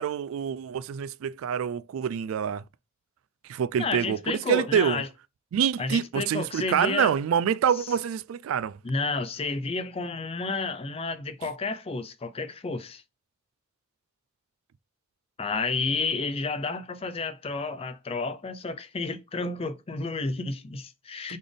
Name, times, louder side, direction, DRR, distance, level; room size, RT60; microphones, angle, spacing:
voice 1, 0.0-2.6 3.5-5.0 5.5-8.8 21.3-21.4, right 8 dB, 70° right, 0.3 m, -26 dB
voice 2, 3.8-5.1 5.8-7.1 8.8-13.0 15.4-21.4, left 3 dB, 25° left, 0.4 m, -31 dB
4.1 x 3.3 x 3.5 m
head